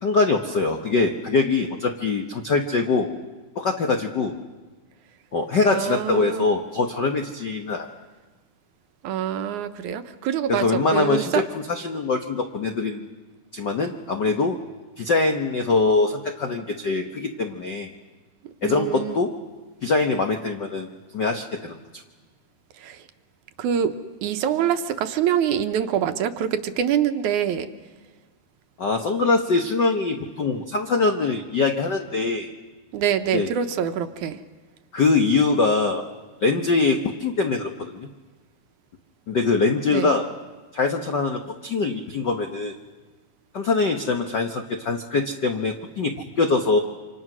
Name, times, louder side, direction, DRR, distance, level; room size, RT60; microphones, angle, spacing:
voice 1, 0.0-3.1 3.5-4.4 5.3-7.9 10.5-13.1 13.5-14.6 15.0-17.9 18.6-19.3 19.8-20.9 21.1-21.8 28.8-32.5 33.3-33.5 34.9-36.1 36.4-38.1 39.3-40.3 40.7-42.7 43.5-46.8, left 3 dB, 65° left, 4 dB, 1.1 m, -23 dB
voice 2, 5.7-6.5 9.0-11.4 18.6-19.2 22.8-23.0 23.6-23.9 24.2-27.7 32.9-34.4 39.9-40.1, right 9 dB, 70° right, 9 dB, 2.2 m, -25 dB
28.0 x 26.0 x 6.2 m, 1.3 s
omnidirectional pair, 3.8 m